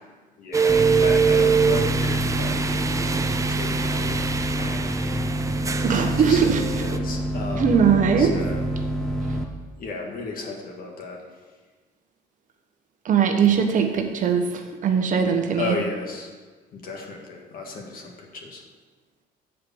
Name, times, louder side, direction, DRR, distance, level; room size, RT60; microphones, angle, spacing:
voice 1, 0.4-7.9 8.2-8.7 9.8-11.2 15.6-16.3 16.7-18.6, left 3 dB, 60° left, 1 dB, 1.7 m, -34 dB
sound 1, 0.5-7.0, right 6 dB, 20° right, 0.5 m, -24 dB
sound 2, 0.7-9.4, right 1 dB, 5° left, 0.8 m, -27 dB
voice 2, 5.8-6.6 7.5-8.4 13.0-15.8, right 7 dB, 50° right, 5 dB, 1.0 m, -20 dB
7.5 x 4.7 x 7.0 m, 1.4 s
cardioid pair, 110°, 17 cm